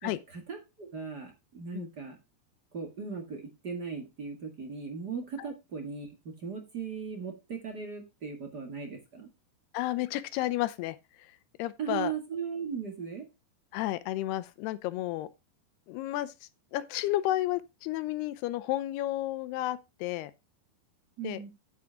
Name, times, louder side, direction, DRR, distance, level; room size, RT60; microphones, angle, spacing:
voice 1, 0.0-2.1 2.7-9.3 11.8-13.3 21.2-21.5, right 6 dB, 50° right, 1.2 m, -38 dB
voice 2, 9.7-11.0 11.6-12.1 13.7-15.3 15.9-16.3 16.7-20.3 21.2-21.4, left 15 dB, 80° left, 2.5 m, -31 dB
9.8 x 8.2 x 3.5 m
omnidirectional pair, 5.0 m